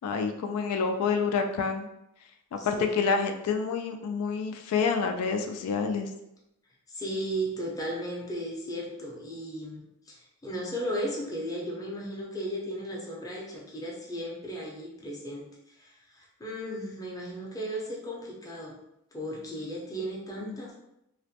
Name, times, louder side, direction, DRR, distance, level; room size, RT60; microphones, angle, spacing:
voice 1, 0.0-1.9 2.5-6.1 20.4-20.6, left 5 dB, 90° left, 10 dB, 0.3 m, -28 dB
voice 2, 2.6-3.1 6.9-15.5 15.8-18.8 19.1-20.7, equal, 15° left, -3 dB, 0.5 m, -35 dB
2.4 x 2.1 x 2.7 m, 0.83 s
head